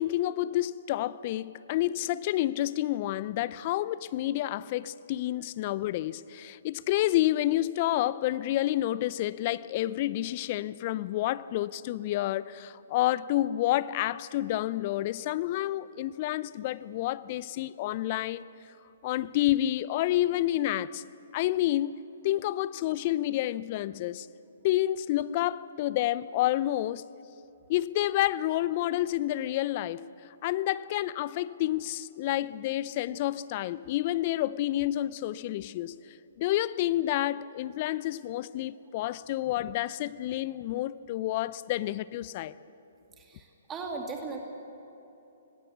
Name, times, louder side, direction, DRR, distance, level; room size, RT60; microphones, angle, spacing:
voice 1, 0.0-18.4 19.0-21.0 21.3-22.0 22.2-24.3 24.6-27.0 27.7-30.1 30.4-36.0 36.4-42.5, left 14 dB, 40° left, 0.5 m, -29 dB
voice 2, 43.2-44.4, right 4 dB, 20° right, 2.2 m, -38 dB
20.0 x 17.0 x 8.3 m
figure-of-eight pair, 130°, 0 cm